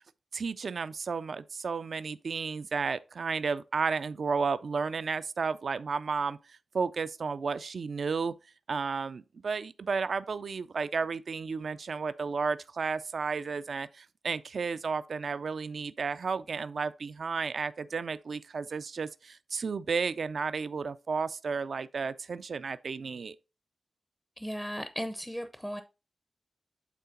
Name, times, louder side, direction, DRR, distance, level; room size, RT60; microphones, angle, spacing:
voice 1, 0.3-8.3 8.7-23.4, right 5 dB, 60° right, 0.4 m, -33 dB
voice 2, 24.4-25.8, equal, ahead, 0.5 m, -36 dB
8.3 x 3.8 x 3.8 m
wide cardioid pair, 115°, 0 cm